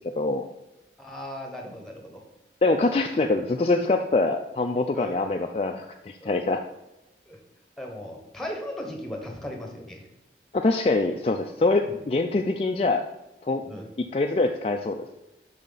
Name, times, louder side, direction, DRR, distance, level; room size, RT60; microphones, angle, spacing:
voice 1, 0.2-0.5 2.6-6.6 10.5-13.0 13.4-13.6 14.1-15.1, left 3 dB, 35° left, 4 dB, 0.3 m, -24 dB
voice 2, 1.0-2.2 4.9-5.2 6.2-6.4 7.3-7.4 7.8-10.0 11.9-12.0 13.7-13.8, left 1 dB, ahead, 2 dB, 1.1 m, -37 dB
7.3 x 5.6 x 4.0 m, 0.97 s
head